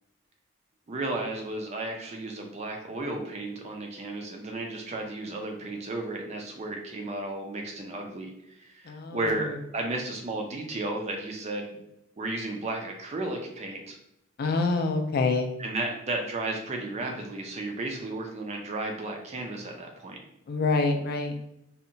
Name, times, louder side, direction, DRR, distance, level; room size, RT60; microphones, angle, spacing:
voice 1, 0.9-11.8 12.2-14.0 15.6-20.2, right 2 dB, 30° right, 2 dB, 0.4 m, -33 dB
voice 2, 8.8-9.5 14.4-15.5 20.5-21.4, left 3 dB, 45° left, 5 dB, 0.3 m, -26 dB
2.7 x 2.1 x 2.6 m, 0.82 s
head